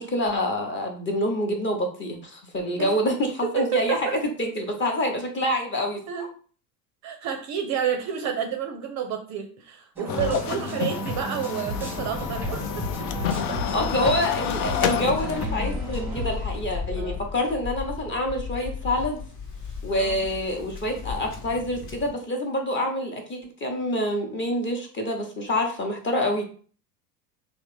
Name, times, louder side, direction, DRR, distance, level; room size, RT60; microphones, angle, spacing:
voice 1, 0.0-4.1 4.4-6.0 13.7-19.2 19.8-26.4, left 1 dB, 25° left, 2 dB, 0.8 m, -27 dB
voice 2, 3.5-4.2 6.1-6.3 7.0-13.6 15.2-15.3 16.9-17.2 20.0-20.2, right 8 dB, 35° right, 5 dB, 0.5 m, -30 dB
sound 1, 10.0-16.3, equal, 5° right, 0.8 m, -34 dB
sound 2, 10.1-15.5, left 9 dB, 65° left, 0.5 m, -29 dB
Waves surf, 11.9-22.1, left 5 dB, 50° left, 1.1 m, -35 dB
3.2 x 2.1 x 3.2 m, 0.43 s
hypercardioid pair, 80°, 48 cm